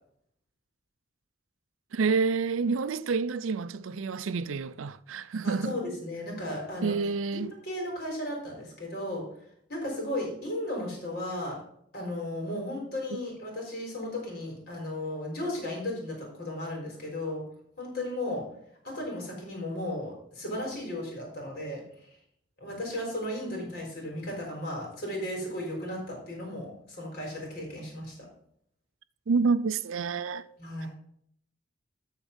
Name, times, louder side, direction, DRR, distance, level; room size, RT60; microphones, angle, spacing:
voice 1, 1.9-5.8 6.8-7.5 29.3-30.4, right 4 dB, 85° right, 0.5 m, -28 dB
voice 2, 5.4-6.9 7.3-9.2 9.7-11.6 11.9-17.4 17.8-18.4 18.8-21.8 22.6-28.1 30.6-30.9, left 1 dB, 50° left, 4.3 m, -35 dB
13.5 x 4.5 x 5.3 m
head